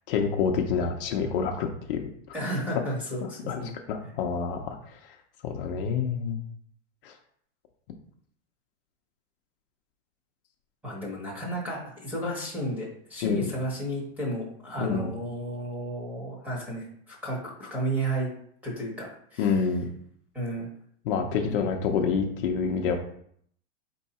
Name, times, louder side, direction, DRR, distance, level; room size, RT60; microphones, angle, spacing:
voice 1, 0.1-2.0 3.5-3.6 3.9-5.0 5.4-6.4 7.0-7.1 13.2-13.5 14.8-15.1 19.4-19.8 21.0-23.0, left 6 dB, 50° left, 2 dB, 0.6 m, -27 dB
voice 2, 2.3-3.7 4.0-4.1 10.8-18.3 18.6-19.6 20.3-20.7 21.4-21.6, right 1 dB, 5° right, -5 dB, 1.0 m, -33 dB
4.5 x 2.7 x 4.1 m, 0.64 s
supercardioid pair, 165°, 34 cm